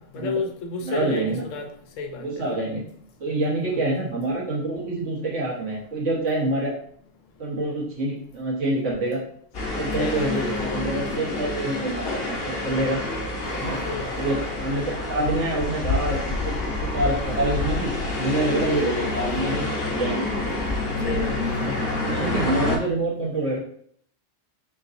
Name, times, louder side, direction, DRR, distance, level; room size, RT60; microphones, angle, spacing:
voice 1, 0.0-1.7 2.0-2.6 10.0-10.7 13.6-14.1 21.0-21.8, left 4 dB, 90° left, 4 dB, 1.0 m, -32 dB
voice 2, 0.8-1.5 2.1-2.8 3.2-6.7 7.4-9.2 9.7-12.4 12.6-13.0 13.6-13.8 14.2-17.9 18.2-20.3 21.6-21.8 22.0-23.6, right 2 dB, 75° right, -4 dB, 1.6 m, -26 dB
sound 1, 9.5-22.8, left 2 dB, 55° left, 1.1 m, -28 dB
3.9 x 3.7 x 2.6 m, 0.62 s
omnidirectional pair, 1.3 m